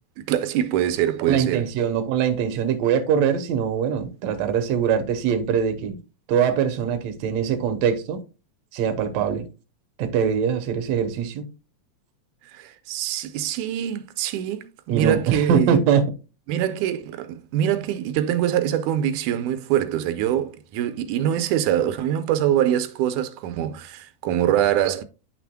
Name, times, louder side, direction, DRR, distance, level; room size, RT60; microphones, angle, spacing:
voice 1, 0.2-1.7 12.5-15.8 16.5-25.0, right 11 dB, 90° right, 2.1 m, -24 dB
voice 2, 1.3-6.0 6.3-8.2 8.7-9.5 10.0-11.5 14.9-16.1, right 7 dB, 70° right, 2.0 m, -22 dB
9.9 x 6.0 x 2.2 m
omnidirectional pair, 3.4 m